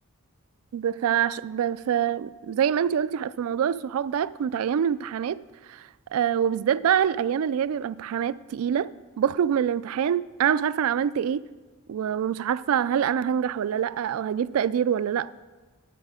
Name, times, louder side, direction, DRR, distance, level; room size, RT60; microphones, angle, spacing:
voice 1, 0.7-5.4 5.7-8.9 9.2-11.4 11.9-15.3, right 8 dB, 70° right, 0.3 m, -25 dB
9.7 x 8.5 x 4.9 m
head